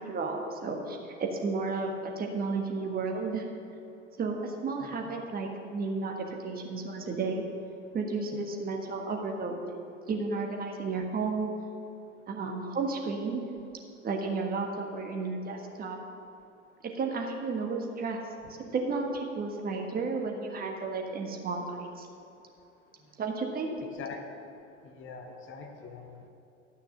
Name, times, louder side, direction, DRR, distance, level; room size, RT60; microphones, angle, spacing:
voice 1, 0.0-3.4 4.2-6.1 6.4-7.4 7.9-9.6 10.1-11.5 12.3-13.4 14.0-16.0 17.0-18.2 18.5-22.1 23.2-23.7, right 4 dB, 25° right, 1 dB, 1.5 m, -32 dB
voice 2, 23.9-24.2 24.8-26.3, left 5 dB, 35° left, 5 dB, 0.9 m, -43 dB
12.5 x 6.5 x 6.4 m, 2.8 s
figure-of-eight pair, 80°, 37 cm